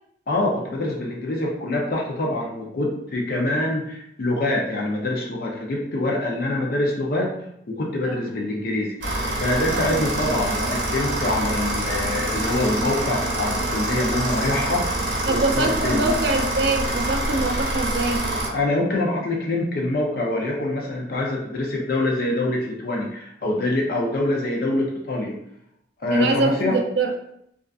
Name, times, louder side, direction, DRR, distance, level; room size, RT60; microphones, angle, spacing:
voice 1, 0.3-7.3 7.7-14.8 15.3-16.2 18.5-25.4 26.0-26.8, left 2 dB, 55° left, -1 dB, 0.4 m, -25 dB
sound 1, 9.0-18.5, right 1 dB, 85° right, 0.7 m, -26 dB
voice 2, 15.3-18.2 26.1-27.1, right 3 dB, 65° right, 3 dB, 0.4 m, -24 dB
2.4 x 2.3 x 2.3 m, 0.75 s
head